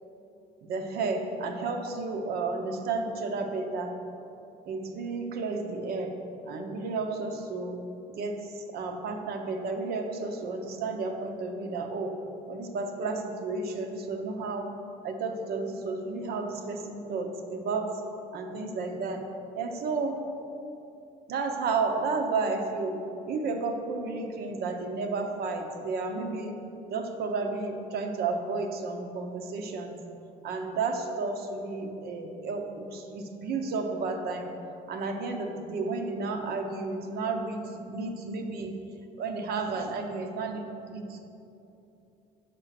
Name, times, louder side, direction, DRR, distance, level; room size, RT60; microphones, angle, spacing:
voice 1, 0.6-4.0 4.6-6.2 6.5-7.8 8.1-12.2 12.5-14.7 15.0-18.0 18.3-19.3 19.5-20.2 21.3-30.0 30.4-34.6 34.9-38.7 39.2-41.2, right 3 dB, 65° right, 4 dB, 0.9 m, -32 dB
6.8 x 5.5 x 5.8 m, 2.9 s
cardioid pair, 110°, 17 cm